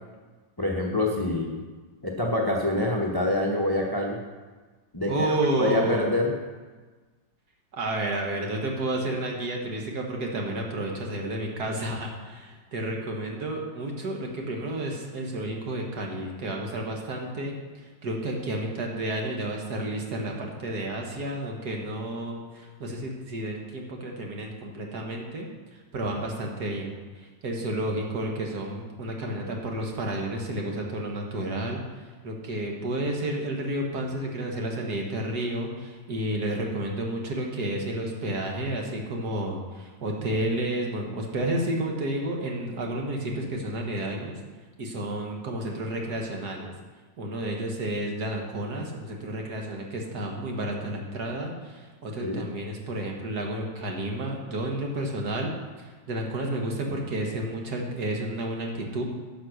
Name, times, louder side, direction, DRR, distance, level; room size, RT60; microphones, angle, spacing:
voice 1, 0.6-1.6 2.0-4.2 4.9-5.3 5.6-6.3 52.2-52.4, left 1 dB, 20° left, 0 dB, 0.6 m, -26 dB
voice 2, 5.1-6.2 7.7-44.4 44.8-46.7 47.2-55.5 55.8-59.0, right 1 dB, 55° right, 0 dB, 1.9 m, -31 dB
10.5 x 6.8 x 6.5 m, 1.4 s
omnidirectional pair, 2.2 m